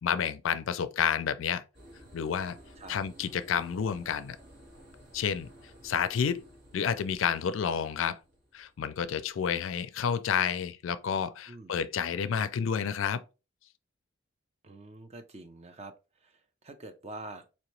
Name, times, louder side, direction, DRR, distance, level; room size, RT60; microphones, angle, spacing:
voice 1, 0.0-1.6 2.1-2.6 2.9-4.4 5.1-5.5 5.8-6.5 6.7-8.2 8.5-13.2, left 7 dB, 75° left, 0.4 m, -30 dB
sound 1, 1.7-9.4, equal, 60° right, 1.7 m, -54 dB
voice 2, 14.6-15.9 16.2-17.5, right 2 dB, 30° right, 0.5 m, -45 dB
4.3 x 2.9 x 3.0 m
head